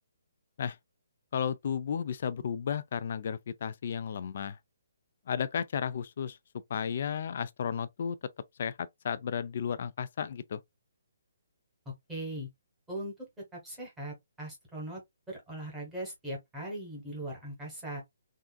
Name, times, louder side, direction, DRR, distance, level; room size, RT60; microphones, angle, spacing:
voice 1, 1.3-4.6 5.3-6.4 6.7-8.2 8.6-10.6, left 7 dB, 35° left, 0.3 m, -33 dB
voice 2, 11.8-12.5 12.9-13.1 13.5-15.0 15.3-18.0, right 1 dB, 5° right, 1.1 m, -39 dB
3.5 x 2.4 x 2.2 m
hypercardioid pair, 180°, 0 cm